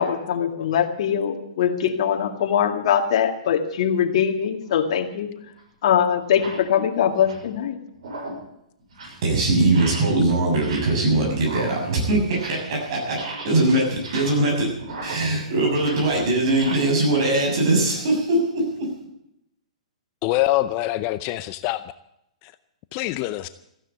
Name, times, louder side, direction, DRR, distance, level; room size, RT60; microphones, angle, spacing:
voice 1, 0.0-5.3 5.8-7.8, left 8 dB, 55° left, 4 dB, 2.1 m, -22 dB
sound 1, 4.7-4.9 5.6-5.7 6.2-6.7 7.1-7.5 7.9-8.5 8.8-9.2 9.6-10.2 10.5-11.1 11.3-12.8 13.0-16.7, right 2 dB, 65° right, 6.7 m, -37 dB
voice 2, 9.2-13.2 13.4-14.7 15.0-18.9, right 2 dB, 50° right, 0 dB, 6.8 m, -21 dB
voice 3, 20.2-21.8 22.4-22.5 22.9-23.5, left 16 dB, 30° left, 13 dB, 0.5 m, -24 dB
15.0 x 9.9 x 8.4 m, 0.80 s
hypercardioid pair, 155°, 4 cm